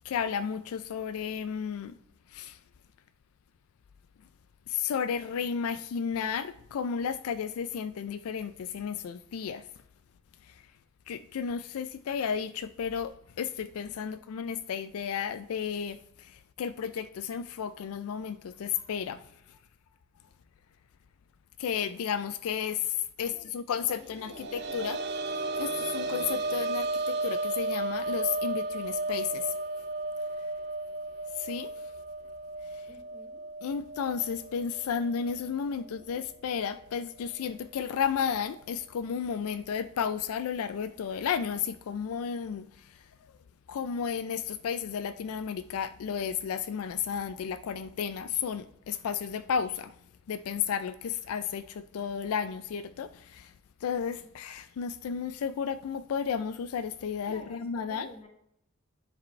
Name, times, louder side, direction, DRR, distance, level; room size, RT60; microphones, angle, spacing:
voice 1, 0.0-2.0 2.3-2.6 4.7-9.6 10.4-10.6 11.1-19.2 19.5-19.6 21.6-25.0 25.6-29.6 31.4-31.7 32.7-32.9 33.6-43.0 43.7-49.9 50.3-53.5 53.8-58.1, left 7 dB, 80° left, 0.3 m, -33 dB
voice 2, 23.2-23.6 23.9-25.0 32.9-33.4 35.7-36.1 54.2-54.3 57.2-58.3, left 1 dB, 25° left, 1.2 m, -50 dB
sound 1, 24.0-35.5 35.8-35.9 37.4-37.5, right 2 dB, 50° right, 0.6 m, -34 dB
10.0 x 5.0 x 3.1 m
head